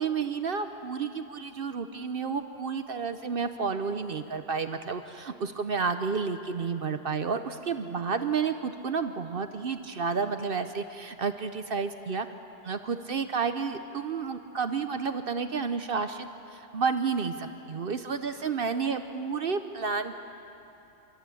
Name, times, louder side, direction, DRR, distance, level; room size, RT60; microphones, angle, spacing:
voice 1, 0.0-12.3 12.6-20.2, right 5 dB, 55° right, 9 dB, 0.8 m, -31 dB
28.0 x 12.5 x 8.4 m, 2.9 s
omnidirectional pair, 1.3 m